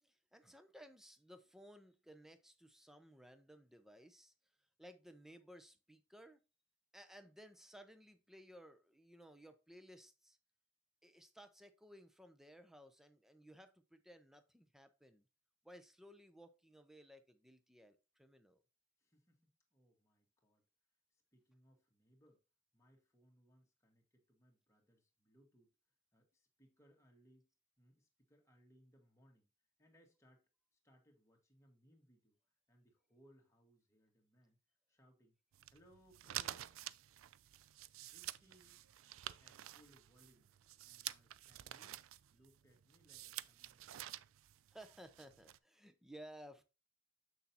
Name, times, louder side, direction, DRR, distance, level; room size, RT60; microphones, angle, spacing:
voice 1, 0.0-4.3 4.8-6.4 6.9-10.4 11.0-15.2 15.6-18.6 44.7-46.6, equal, ahead, 0.6 m, -58 dB
voice 2, 19.0-20.6 21.1-22.4 22.7-25.7 26.1-27.5 27.8-29.5 29.8-32.4 32.7-34.6 34.9-35.3 35.7-36.9 38.0-38.8 39.4-40.5 40.8-42.0 42.3-44.2, equal, 15° left, 1.7 m, -70 dB
sound 1, 35.5-45.6, right 13 dB, 90° right, 0.4 m, -50 dB
6.9 x 6.3 x 2.9 m
head